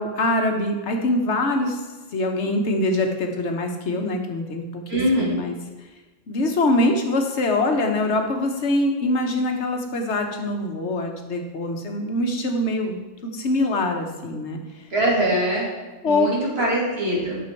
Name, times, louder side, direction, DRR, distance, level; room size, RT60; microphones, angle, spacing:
voice 1, 0.0-1.8 2.1-5.6 6.3-14.6 16.0-16.3, left 2 dB, 65° left, 4 dB, 1.4 m, -24 dB
voice 2, 4.9-5.4 14.9-15.7 16.1-17.4, right 1 dB, 55° right, -5 dB, 2.6 m, -22 dB
8.9 x 6.2 x 4.5 m, 1.2 s
omnidirectional pair, 1.3 m